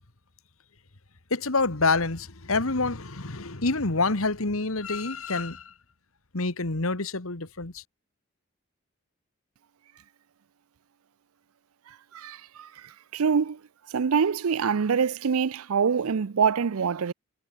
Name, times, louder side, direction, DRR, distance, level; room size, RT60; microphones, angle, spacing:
voice 1, 1.3-5.7 6.3-7.8, left 3 dB, 75° left, 1.9 m, -27 dB
voice 2, 12.1-12.7 13.1-13.6 13.9-17.1, right 6 dB, 80° right, 0.5 m, -25 dB
head